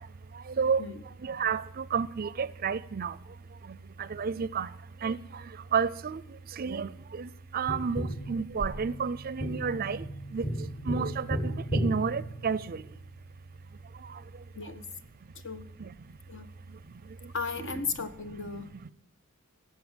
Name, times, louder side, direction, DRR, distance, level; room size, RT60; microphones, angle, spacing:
voice 1, 1.2-3.1 4.1-4.7 5.0-5.2 5.7-6.2 6.6-6.9 7.2-7.3 7.5-10.0 10.3-10.4 10.9-11.4 11.7-12.8 17.6-17.8, right 6 dB, 45° right, 0.5 m, -30 dB
Tap, 7.7-13.0 15.6-15.7, right 1 dB, 35° left, 1.8 m, -34 dB
voice 2, 17.3-18.9, left 4 dB, 60° left, 1.2 m, -36 dB
17.5 x 7.6 x 8.9 m
head